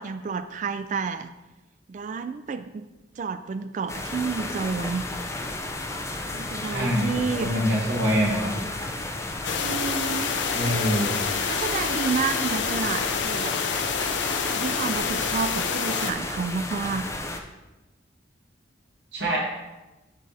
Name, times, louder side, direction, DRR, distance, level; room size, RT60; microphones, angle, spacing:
voice 1, 0.0-1.3 1.9-2.9 3.2-5.0 6.3-7.5 9.6-10.3 10.6-10.8 11.5-13.6 14.4-17.1, right 5 dB, 40° right, 11 dB, 0.3 m, -30 dB
sound 1, 3.9-17.4, left 2 dB, 15° left, 0.5 m, -33 dB
voice 2, 6.7-7.1 7.4-8.5 10.5-11.2 19.1-19.4, equal, 75° right, -5 dB, 1.7 m, -24 dB
ns MMstairwell, 9.4-16.1, left 6 dB, 75° left, 0.6 m, -28 dB
6.6 x 4.8 x 4.1 m, 1.1 s
head